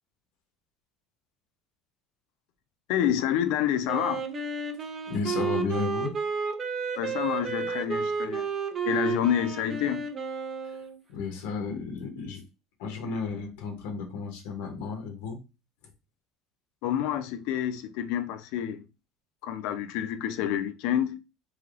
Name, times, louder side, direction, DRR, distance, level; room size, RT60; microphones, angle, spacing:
voice 1, 2.9-4.2 7.0-8.5 8.8-10.1 16.8-18.8 19.4-21.2, left 10 dB, 70° left, 0.5 m, -28 dB
Wind instrument woodwind instrument, 3.9-11.0, right 5 dB, 30° right, 0.5 m, -31 dB
voice 2, 5.1-6.1 10.6-10.8 11.1-12.4 12.8-15.4, left 5 dB, 85° left, 0.8 m, -33 dB
3.3 x 2.7 x 2.4 m
cardioid pair, 140°, 0 cm